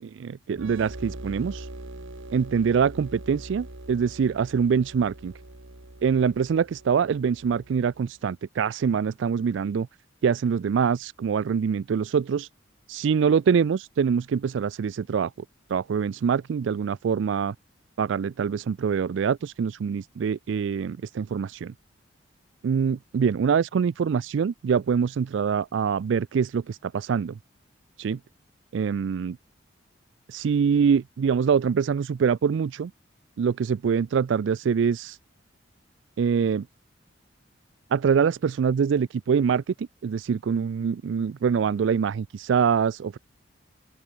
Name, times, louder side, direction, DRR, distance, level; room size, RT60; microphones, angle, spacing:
voice 1, 0.0-1.7 2.3-5.3 6.0-9.9 10.2-12.5 12.9-15.3 15.7-17.6 18.0-21.7 22.6-27.4 28.0-28.2 28.7-29.4 30.3-32.9 33.4-35.2 36.2-36.7 37.9-43.2, right 6 dB, 70° right, 0.3 m, -24 dB
sound 1, 0.5-8.1, right 1 dB, 90° right, 2.3 m, -42 dB
open air
head